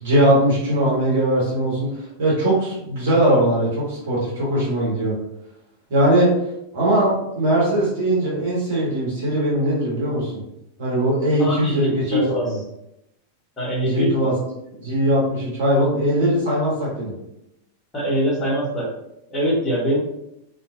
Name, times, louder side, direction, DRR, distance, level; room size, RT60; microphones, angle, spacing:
voice 1, 0.0-1.9 2.2-5.1 5.9-6.3 6.7-10.4 10.8-12.6 13.8-14.3 14.8-17.1, right 1 dB, 55° right, -6 dB, 1.4 m, -20 dB
voice 2, 11.4-12.4 13.6-14.3 17.9-18.9 19.3-20.0, equal, 20° left, -6 dB, 1.1 m, -23 dB
2.5 x 2.5 x 2.4 m, 0.81 s
figure-of-eight pair, 90°, 0 cm